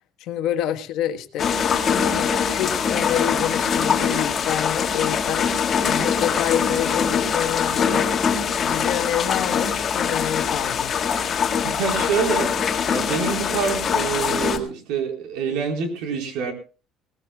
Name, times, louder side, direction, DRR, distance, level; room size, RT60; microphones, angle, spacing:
voice 1, 0.2-1.5 1.8-5.5 5.9-8.1 8.6-10.9, left 10 dB, 55° left, 7 dB, 1.3 m, -27 dB
sound 1, 1.4-14.6, left 6 dB, 25° left, 1.8 m, -23 dB
voice 2, 11.6-12.5 12.9-16.5, right 6 dB, 75° right, 4 dB, 4.3 m, -26 dB
21.5 x 18.0 x 2.3 m, 0.34 s
cardioid pair, 175°, 0 cm